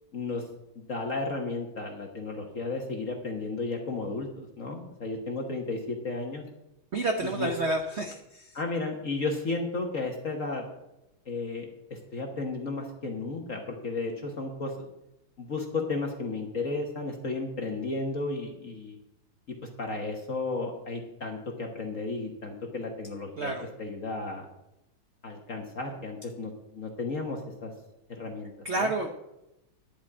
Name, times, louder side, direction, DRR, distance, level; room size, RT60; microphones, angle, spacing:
voice 1, 0.1-0.4 0.9-6.4 7.2-7.5 8.5-10.6 11.3-14.9 15.4-19.0 19.8-23.5 23.8-24.4 25.2-27.7 28.2-28.5 28.8-28.9, left 3 dB, 45° left, 1 dB, 1.4 m, -33 dB
voice 2, 6.9-8.5 23.4-23.6 28.6-29.1, right 2 dB, 55° right, 4 dB, 0.7 m, -29 dB
11.0 x 5.2 x 8.4 m, 0.92 s
omnidirectional pair, 2.3 m